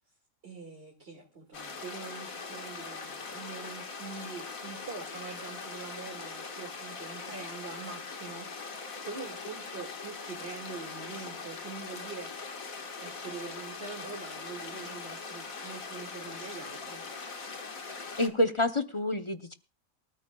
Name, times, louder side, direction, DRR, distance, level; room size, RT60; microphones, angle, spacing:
voice 1, 0.4-17.1, right 4 dB, 45° right, -1 dB, 2.5 m, -44 dB
sound 1, 1.5-18.3, left 4 dB, 75° left, 2.1 m, -41 dB
voice 2, 18.2-19.5, left 1 dB, 30° left, 8 dB, 0.6 m, -28 dB
24.5 x 13.5 x 2.3 m, 0.31 s
omnidirectional pair, 1.5 m